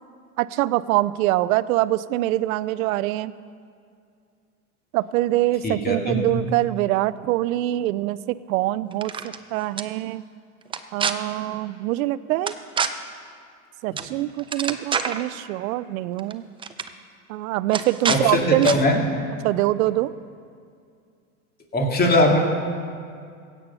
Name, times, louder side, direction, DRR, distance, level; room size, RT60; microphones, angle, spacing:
voice 1, 0.4-3.3 4.9-10.2 10.9-12.5 13.8-16.5 17.3-18.7 19.4-20.1, right 16 dB, 70° right, 18 dB, 0.6 m, -24 dB
voice 2, 5.6-6.2 18.1-19.0 21.7-22.4, left 1 dB, 20° left, 1 dB, 2.4 m, -20 dB
sound 1, 8.9-9.4 9.8-9.9 10.7-11.1 12.5-12.9 14.0-14.1 14.4-15.2 16.2-16.3 16.6-16.9 17.7-18.2 18.6-18.8, right 6 dB, 10° right, 0.4 m, -26 dB
16.0 x 8.6 x 5.5 m, 2.3 s
hypercardioid pair, 100°, 44 cm